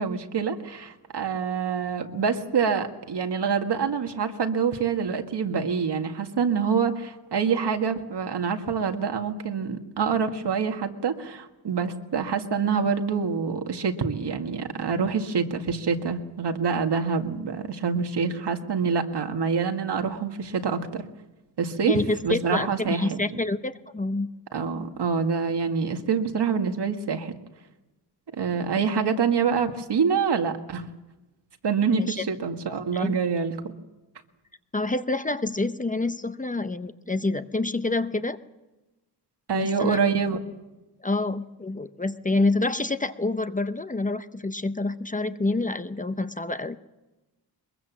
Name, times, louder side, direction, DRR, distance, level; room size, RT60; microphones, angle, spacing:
voice 1, 0.0-21.0 21.6-22.0 22.2-23.2 24.5-27.3 28.4-30.9 31.6-33.7 39.5-40.4, right 6 dB, 75° right, 5 dB, 1.9 m, -26 dB
voice 2, 21.8-24.3 31.9-32.2 32.9-33.2 34.7-38.4 39.5-40.0 41.0-46.8, left 2 dB, 20° left, 10 dB, 0.7 m, -27 dB
23.0 x 22.0 x 7.3 m, 1.1 s
wide cardioid pair, 145°, 42 cm